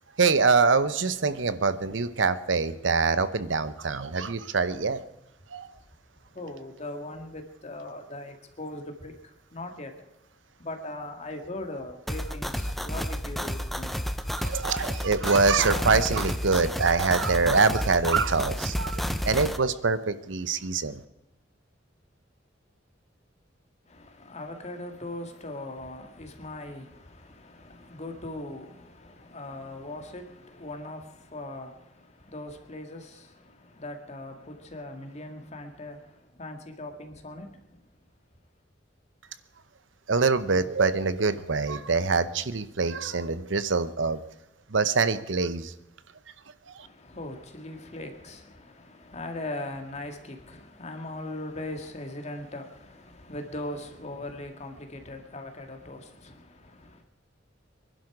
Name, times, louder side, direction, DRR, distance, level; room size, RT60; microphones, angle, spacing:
voice 1, 0.2-5.0 5.5-5.7 12.9-13.0 14.3-21.0 40.1-44.2 44.7-45.7 46.7-46.9, right 4 dB, 80° right, 0.9 m, -25 dB
voice 2, 6.3-9.9 10.6-13.9 23.9-37.8 46.8-57.0, left 1 dB, 35° left, 2.0 m, -40 dB
sound 1, 12.1-19.6, equal, ahead, 0.7 m, -31 dB
24.5 x 11.5 x 4.9 m
head